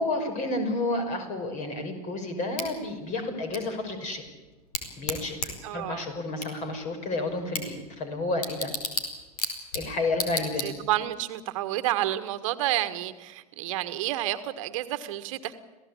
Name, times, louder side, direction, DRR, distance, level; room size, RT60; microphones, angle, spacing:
voice 1, 0.0-4.2 5.0-8.7 9.7-10.8, left 2 dB, 40° left, 7 dB, 5.8 m, -31 dB
Bicycle / Tick, 2.6-11.1, left 3 dB, 70° left, 4.6 m, -36 dB
voice 2, 5.6-6.1 10.6-15.5, right 14 dB, 55° right, 11 dB, 1.5 m, -30 dB
27.5 x 17.0 x 8.6 m, 1.2 s
figure-of-eight pair, 90°, 20 cm